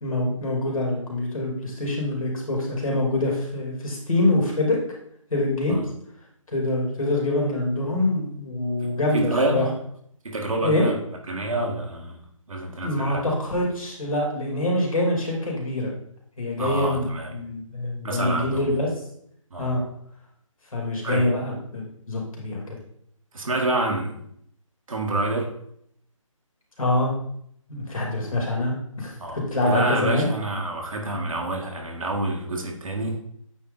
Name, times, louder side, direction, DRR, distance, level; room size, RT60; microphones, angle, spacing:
voice 1, 0.0-4.8 5.3-5.8 6.5-9.6 10.6-10.9 12.8-15.9 16.4-17.1 17.3-18.9 19.6-19.8 20.7-22.8 26.8-27.1 27.7-30.3, left 2 dB, 80° left, -2 dB, 2.9 m, -25 dB
voice 2, 8.8-9.7 10.2-11.0 11.3-12.2 12.5-13.3 16.6-17.3 18.0-18.7 19.5-19.7 21.0-21.3 23.3-24.2 24.9-25.6 29.2-33.2, right 2 dB, 75° right, 1 dB, 1.9 m, -27 dB
8.5 x 3.8 x 4.0 m, 0.70 s
figure-of-eight pair, 155°, 17 cm